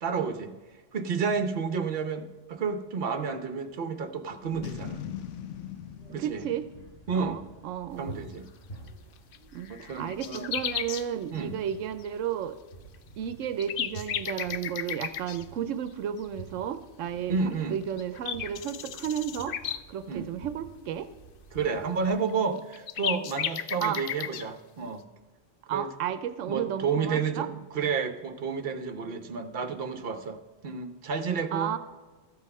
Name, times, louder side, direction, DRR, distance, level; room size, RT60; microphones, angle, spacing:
voice 1, 0.0-5.0 6.1-6.5 7.1-7.4 8.0-8.5 9.7-10.5 11.3-11.5 17.3-17.8 20.1-20.3 21.5-25.0 25.7-25.9 26.5-31.7, right 5 dB, 55° right, 8 dB, 1.0 m, -31 dB
sound 1, 4.3-22.1, right 2 dB, 30° left, 3.6 m, -49 dB
Boom, 4.6-8.0, left 10 dB, 75° left, 1.0 m, -40 dB
voice 2, 6.2-6.6 7.2-8.2 9.5-12.6 13.2-17.4 17.7-21.1 23.8-24.0 25.7-27.5 31.5-31.8, right 9 dB, 90° right, 12 dB, 1.0 m, -33 dB
sound 2, 8.9-9.0 9.3-9.4 9.6-11.0 12.9-13.0 13.4-15.4 17.5-17.6 18.0-19.8 22.3-22.4 22.6-24.4, left 9 dB, 60° left, 0.6 m, -34 dB
13.0 x 8.3 x 5.4 m, 1.3 s
omnidirectional pair, 1.3 m